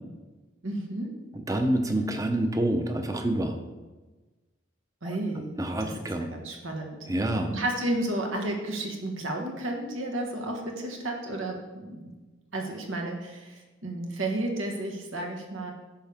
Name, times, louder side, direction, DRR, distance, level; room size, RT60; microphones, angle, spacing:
voice 1, 0.6-1.1 5.0-7.0 7.5-12.0 12.5-15.7, right 1 dB, 85° right, 1 dB, 1.6 m, -32 dB
voice 2, 1.3-3.6 5.0-6.3 7.1-7.5, right 1 dB, 15° right, 5 dB, 0.7 m, -28 dB
10.0 x 6.6 x 3.6 m, 1.2 s
head